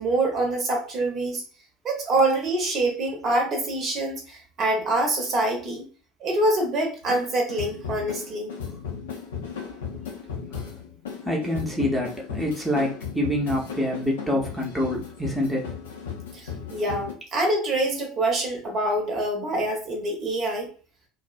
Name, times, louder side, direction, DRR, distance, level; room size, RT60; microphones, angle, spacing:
voice 1, 0.0-1.4 1.8-5.9 6.2-8.5 16.3-20.7, right 2 dB, 40° right, 1 dB, 0.8 m, -25 dB
sound 1, 7.0-17.1, left 7 dB, 70° left, 0.5 m, -36 dB
voice 2, 11.2-15.7, left 1 dB, ahead, -3 dB, 0.7 m, -26 dB
2.5 x 2.0 x 2.4 m, 0.38 s
figure-of-eight pair, 70°, 0 cm